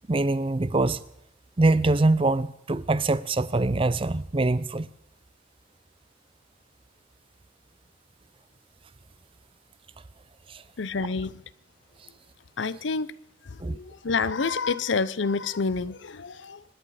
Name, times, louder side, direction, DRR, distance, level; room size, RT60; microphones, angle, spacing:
voice 1, 0.1-1.0 1.6-4.9 10.5-10.6 13.6-13.8, right 2 dB, 30° right, 0.5 m, -24 dB
voice 2, 10.8-11.4 12.6-13.1 13.4-16.6, left 4 dB, 75° left, 0.6 m, -28 dB
25.5 x 11.0 x 4.9 m
head